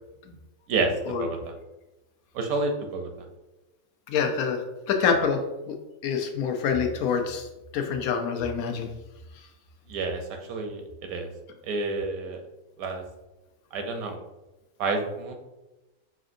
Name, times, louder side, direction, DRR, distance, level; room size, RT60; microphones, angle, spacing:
voice 1, 0.7-1.5 2.3-3.1 9.9-11.3 11.6-12.4 12.8-13.0 13.7-14.2 14.8-15.3, right 3 dB, 80° right, 4 dB, 1.1 m, -29 dB
voice 2, 4.1-4.6 4.9-5.7 6.0-7.5 7.7-8.9, left 6 dB, 85° left, 5 dB, 1.1 m, -26 dB
5.9 x 2.6 x 2.6 m, 1.0 s
omnidirectional pair, 1.5 m